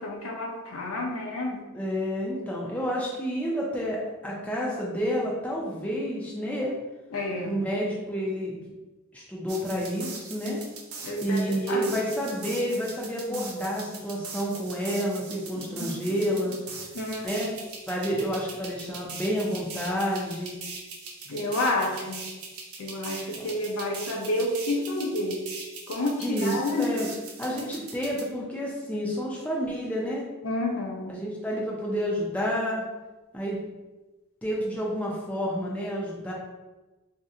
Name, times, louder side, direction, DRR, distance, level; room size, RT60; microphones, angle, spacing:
voice 1, 0.0-1.6 7.1-7.5 11.0-12.1 15.6-15.9 16.9-17.3 21.3-22.2 22.8-25.4 25.9-27.1 30.4-31.2, left 1 dB, 65° left, 1 dB, 0.6 m, -30 dB
voice 2, 1.7-6.8 7.5-8.5 9.1-10.6 11.2-16.5 17.2-17.5 17.9-20.5 23.4-23.5 26.2-27.1 27.4-30.3 31.1-32.8 33.3-33.6 34.4-36.3, equal, 5° left, -4 dB, 0.4 m, -29 dB
sound 1, 9.5-28.2, right 4 dB, 75° right, 0.6 m, -41 dB
2.7 x 2.1 x 3.6 m, 1.1 s
head